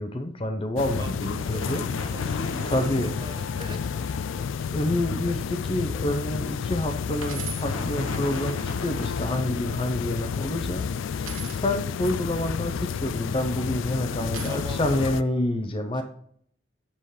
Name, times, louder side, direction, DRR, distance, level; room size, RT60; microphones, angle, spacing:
voice 1, 0.0-1.8 2.6-3.2 4.7-16.0, left 1 dB, 25° left, 6 dB, 0.6 m, -28 dB
sound 1, 0.8-15.2, left 6 dB, 65° left, 0.3 m, -31 dB
voice 2, 0.9-2.3 2.6-3.9 14.1-15.0 15.9-16.0, right 1 dB, 20° right, 6 dB, 0.9 m, -42 dB
sound 2, 1.2-4.4 7.2-9.4, left 2 dB, 90° left, 1.2 m, -36 dB
sound 3, 5.7-6.0 6.5-6.6 7.2-7.7 8.8-9.5 11.2-11.6 13.1-13.6 14.3-14.5, right 7 dB, 85° right, 1.3 m, -39 dB
7.8 x 7.0 x 3.2 m, 0.64 s
head